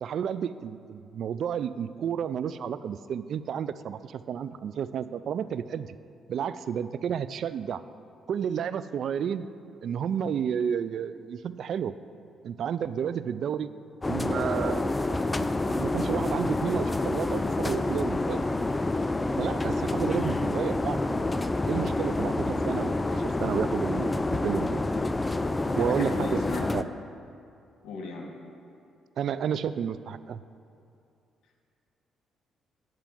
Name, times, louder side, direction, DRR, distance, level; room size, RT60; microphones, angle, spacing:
voice 1, 0.0-6.0 6.3-7.8 8.3-9.5 9.8-11.9 12.4-13.7 14.1-15.2 15.7-18.4 19.4-21.0 21.7-24.8 25.8-26.4 26.7-26.9 29.2-30.4, right 8 dB, 65° right, 14 dB, 0.3 m, -31 dB
sound 1, 14.0-26.8, left 2 dB, 20° left, 0.3 m, -28 dB
voice 2, 25.7-26.7 27.8-28.3, left 3 dB, 80° left, 1 dB, 1.5 m, -36 dB
9.0 x 4.7 x 7.6 m, 2.5 s
cardioid pair, 90°, 0 cm